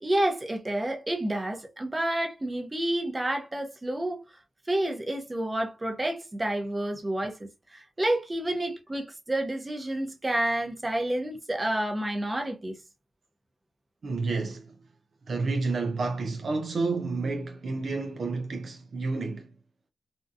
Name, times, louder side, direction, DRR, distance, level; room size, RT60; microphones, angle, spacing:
voice 1, 0.0-4.2 4.7-12.7, right 1 dB, 25° right, 0.7 m, -29 dB
voice 2, 14.0-14.8 15.3-19.5, right 3 dB, 55° right, 0.4 m, -30 dB
2.7 x 2.2 x 2.4 m
cardioid pair, 55°, 0 cm